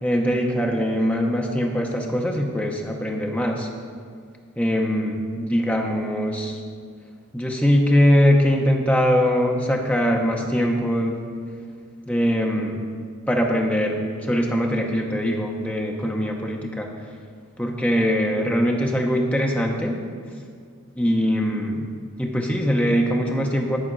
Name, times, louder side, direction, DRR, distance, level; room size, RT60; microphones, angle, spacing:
voice 1, 0.0-3.7 4.6-6.6 7.3-11.2 12.1-12.8 13.3-16.9 17.6-20.0 20.9-21.9 22.2-23.8, equal, 5° left, 1 dB, 0.7 m, -22 dB
11.0 x 4.2 x 6.1 m, 2.1 s
head